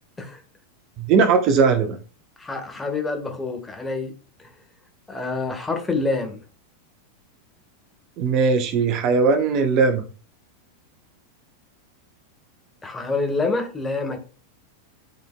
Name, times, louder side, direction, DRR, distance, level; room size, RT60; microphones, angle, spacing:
voice 1, 1.0-2.0 8.2-10.0, right 5 dB, 40° right, 0.9 m, -19 dB
voice 2, 2.4-4.1 5.1-6.4 12.8-14.2, left 3 dB, 10° left, 1.4 m, -27 dB
12.0 x 4.3 x 2.2 m
figure-of-eight pair, 90°, 0 cm